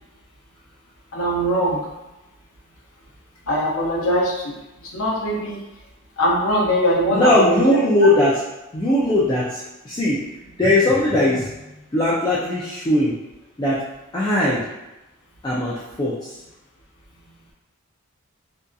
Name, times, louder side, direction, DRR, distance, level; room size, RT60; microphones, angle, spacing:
voice 1, 1.1-1.9 3.5-5.6 6.2-7.8, equal, 70° left, -3 dB, 0.7 m, -21 dB
voice 2, 7.1-8.4 8.7-10.2 10.6-13.2 13.6-13.8 14.1-14.6 15.4-16.3, left 1 dB, 20° left, -8 dB, 0.4 m, -19 dB
2.7 x 2.5 x 2.2 m, 1.0 s
head